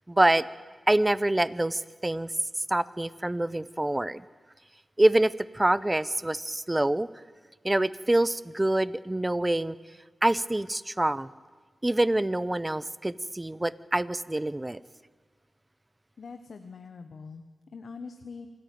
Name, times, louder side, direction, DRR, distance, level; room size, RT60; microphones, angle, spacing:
voice 1, 0.1-0.5 0.9-2.3 2.7-4.2 5.0-7.1 7.6-9.8 10.2-11.3 11.8-14.8, right 1 dB, 20° right, 17 dB, 0.8 m, -26 dB
voice 2, 16.2-17.4 17.7-18.5, left 5 dB, 70° left, 7 dB, 1.2 m, -43 dB
26.5 x 14.0 x 9.4 m, 1.5 s
cardioid pair, 60°, 0 cm